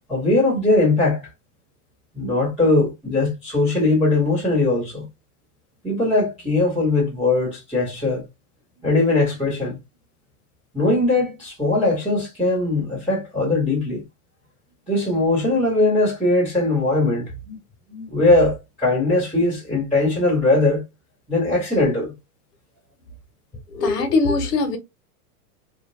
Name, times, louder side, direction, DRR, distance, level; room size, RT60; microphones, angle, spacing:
voice 1, 0.1-1.3 2.1-5.1 5.8-8.2 8.8-9.8 10.7-14.0 14.9-17.6 17.9-20.8 21.3-22.1, left 2 dB, 5° right, 0.4 m, -20 dB
voice 2, 23.7-24.8, left 3 dB, 85° left, 1.2 m, -21 dB
2.9 x 2.5 x 2.4 m
supercardioid pair, 165°, 46 cm